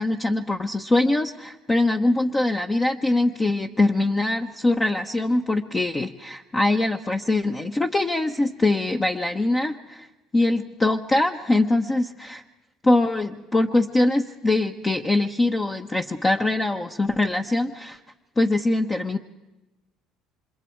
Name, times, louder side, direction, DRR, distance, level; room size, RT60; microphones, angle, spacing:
voice 1, 0.0-10.1 10.3-12.4 12.8-18.0 18.4-19.2, left 2 dB, 25° left, 4 dB, 1.2 m, -23 dB
30.0 x 26.5 x 4.7 m, 1.1 s
supercardioid pair, 90°, 0 cm